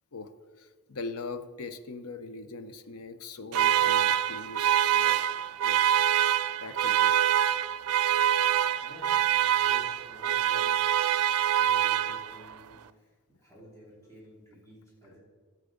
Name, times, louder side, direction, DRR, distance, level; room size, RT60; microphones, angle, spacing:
voice 1, 0.6-5.1 5.6-5.8 6.6-7.1, left 3 dB, 80° left, 10 dB, 0.7 m, -41 dB
sound 1, 3.5-12.5, right 10 dB, 85° right, 0.4 m, -25 dB
voice 2, 8.8-11.0 11.6-15.2, equal, 15° left, -8 dB, 3.3 m, -52 dB
14.5 x 7.9 x 3.9 m, 1.5 s
head